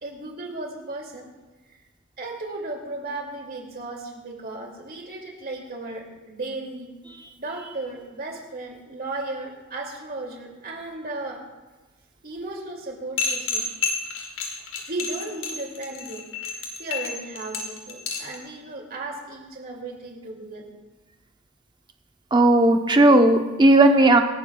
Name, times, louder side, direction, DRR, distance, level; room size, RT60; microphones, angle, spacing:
voice 1, 0.0-1.2 2.2-6.9 7.4-11.4 12.2-13.9 14.9-16.2 16.5-20.6, right 2 dB, 45° right, 0 dB, 2.7 m, -35 dB
sound 1, 13.2-18.4, left 4 dB, 70° left, 2.3 m, -29 dB
voice 2, 22.3-24.2, right 2 dB, 20° right, 5 dB, 0.9 m, -15 dB
26.5 x 12.0 x 2.4 m, 1.2 s
head